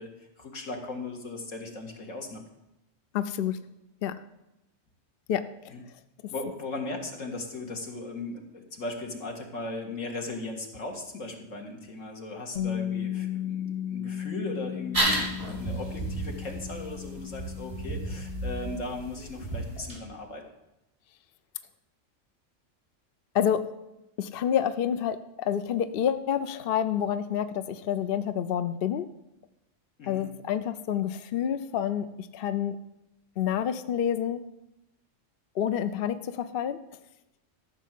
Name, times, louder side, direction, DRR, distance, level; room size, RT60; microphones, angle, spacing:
voice 1, 0.0-2.4 5.7-5.8 6.2-20.4 30.0-30.3, left 2 dB, 80° left, 2 dB, 2.2 m, -38 dB
voice 2, 3.1-3.6 4.0-4.1 5.3-5.4 23.3-23.6 24.2-29.1 30.1-32.8 33.4-34.4 35.6-36.8, left 9 dB, 55° left, 11 dB, 0.7 m, -28 dB
Bass guitar, 12.6-18.8, left 10 dB, 35° left, 1.1 m, -35 dB
sound 1, 14.9-19.9, right 1 dB, 25° right, 4.1 m, -32 dB
13.5 x 6.2 x 7.5 m, 0.91 s
omnidirectional pair, 1.3 m